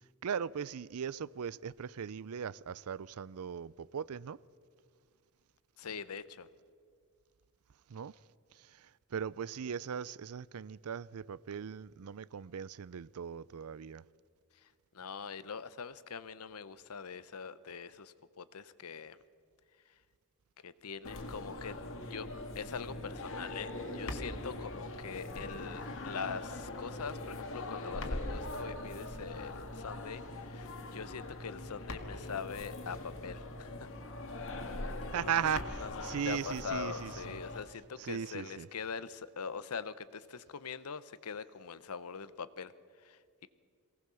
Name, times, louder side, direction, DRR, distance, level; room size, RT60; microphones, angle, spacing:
voice 1, 0.2-4.4 7.9-8.1 8.5-14.0 35.1-37.4 38.0-38.7, right 7 dB, 75° right, 0.5 m, -38 dB
voice 2, 5.8-6.5 14.5-19.2 19.8-20.0 20.6-21.8 22.1-22.3 22.5-33.9 35.2-43.5, left 6 dB, 80° left, 0.8 m, -43 dB
sound 1, 21.0-37.6, left 2 dB, 65° left, 1.9 m, -42 dB
23.0 x 17.5 x 7.0 m
head